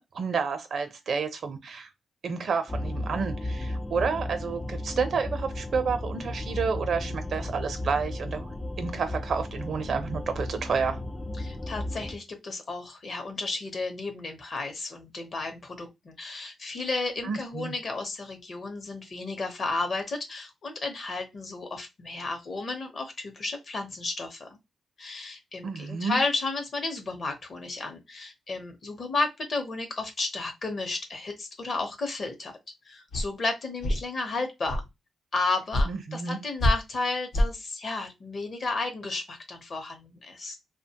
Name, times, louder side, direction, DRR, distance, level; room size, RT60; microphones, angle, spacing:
voice 1, 0.0-1.9 2.2-8.5 8.8-11.0 17.2-17.7 25.6-26.2 35.9-36.4, right 5 dB, 60° right, 0.5 m, -30 dB
sound 1, 2.7-12.2, left 1 dB, 15° left, 0.3 m, -34 dB
voice 2, 11.4-24.5 25.0-32.5 32.9-34.8 35.3-40.6, left 3 dB, 45° left, 0.7 m, -33 dB
sound 2, 33.1-33.2 33.8-34.0 34.7-34.9 35.7-35.9 36.6-36.7 37.3-37.5, left 1 dB, 80° left, 0.8 m, -24 dB
2.8 x 2.1 x 2.7 m
cardioid pair, 115°, 0 cm